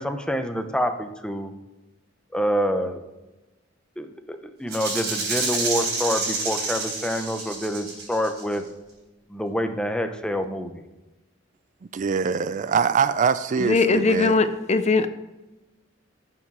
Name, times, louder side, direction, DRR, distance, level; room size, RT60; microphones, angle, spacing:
voice 1, 0.0-1.5 2.3-3.0 4.0-8.6 9.3-10.8, equal, 5° left, 6 dB, 0.8 m, -27 dB
Rattle (instrument), 4.7-8.5, right 3 dB, 60° right, 4.2 m, -28 dB
voice 2, 11.9-14.4, right 6 dB, 40° right, 14 dB, 0.4 m, -23 dB
voice 3, 13.6-15.1, left 3 dB, 35° left, 11 dB, 0.6 m, -20 dB
11.5 x 7.4 x 4.8 m, 1.1 s
head